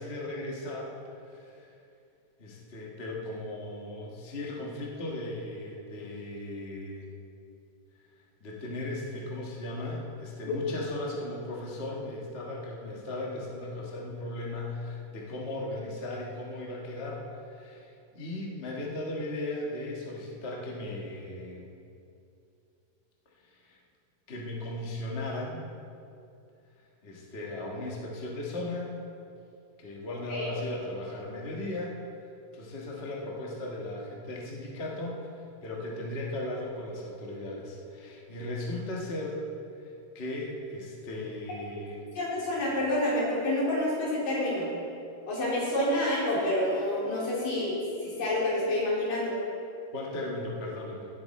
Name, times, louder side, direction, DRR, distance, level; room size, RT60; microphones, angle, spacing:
voice 1, 0.0-1.7 2.4-7.1 8.4-21.7 23.5-23.8 24.3-25.6 27.0-29.0 29.8-32.0 32.5-39.4 39.8-42.1 49.9-51.1, left 2 dB, 40° left, -2 dB, 0.8 m, -37 dB
voice 2, 42.2-44.7 45.3-47.7 48.0-49.3, left 1 dB, 80° left, -6 dB, 4.7 m, -28 dB
16.5 x 7.4 x 4.3 m, 2.6 s
omnidirectional pair, 3.8 m